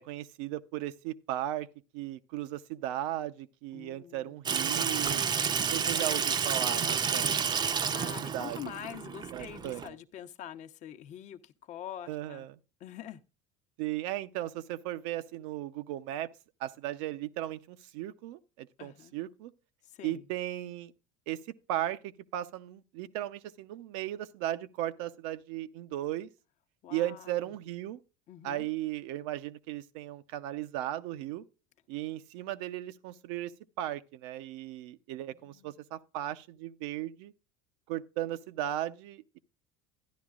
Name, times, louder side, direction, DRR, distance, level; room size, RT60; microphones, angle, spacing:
voice 1, 0.0-1.7 1.9-5.2 5.7-7.6 8.3-8.7 9.3-9.9 12.1-12.6 13.8-16.3 16.6-19.5 20.0-20.9 21.3-21.4 21.7-26.3 26.9-28.0 28.4-31.4 31.9-33.5 33.8-37.3 37.9-39.4, right 13 dB, 75° right, 0.7 m, -36 dB
voice 2, 3.7-4.4 7.9-12.5 12.8-13.2 18.8-19.1 19.9-20.2 26.8-27.4 28.3-28.7 35.3-35.8, left 11 dB, 50° left, 0.9 m, -45 dB
Water tap faucet / Sink (filling or washing), 4.5-9.9, right 6 dB, 30° right, 0.6 m, -30 dB
12.5 x 10.5 x 2.4 m
supercardioid pair, 95°, 16 cm